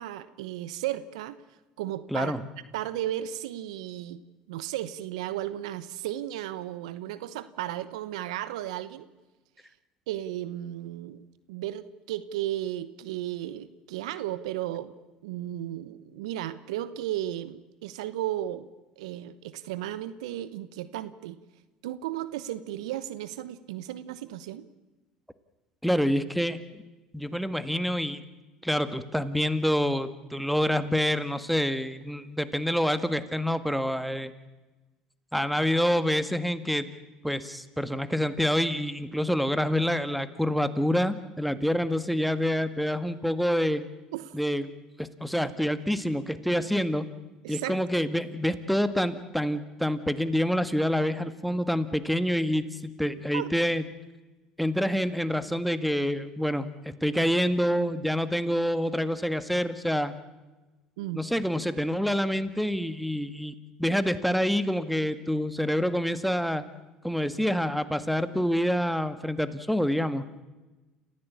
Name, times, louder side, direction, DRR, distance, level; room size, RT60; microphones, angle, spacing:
voice 1, 0.0-1.4 1.8-2.4 2.7-4.2 4.5-9.1 10.1-11.2 11.5-14.9 15.2-18.7 19.0-21.4 21.8-24.7 44.1-44.3 47.4-47.8 53.3-53.5 61.0-61.2, right 13 dB, 80° right, 15 dB, 1.0 m, -34 dB
voice 2, 2.1-2.4 25.8-26.6 27.1-28.2 28.6-34.3 35.3-36.9 37.2-43.8 44.3-44.7 45.0-47.1 47.5-53.8 54.6-60.1 61.1-63.5 63.8-66.6 67.0-70.2, equal, ahead, 11 dB, 1.8 m, -27 dB
29.0 x 15.5 x 8.5 m, 1.2 s
hypercardioid pair, 70°, 3 cm